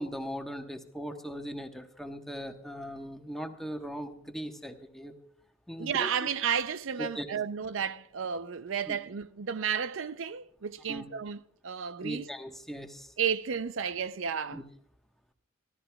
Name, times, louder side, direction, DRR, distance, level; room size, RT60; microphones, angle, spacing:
voice 1, 0.0-5.1 5.7-6.3 7.0-7.3 8.9-9.0 10.9-11.0 12.0-13.1 14.5-14.6, equal, ahead, 1.2 m, -39 dB
voice 2, 5.8-12.3 13.2-14.6, right 7 dB, 80° right, 0.5 m, -32 dB
25.5 x 15.0 x 2.3 m
head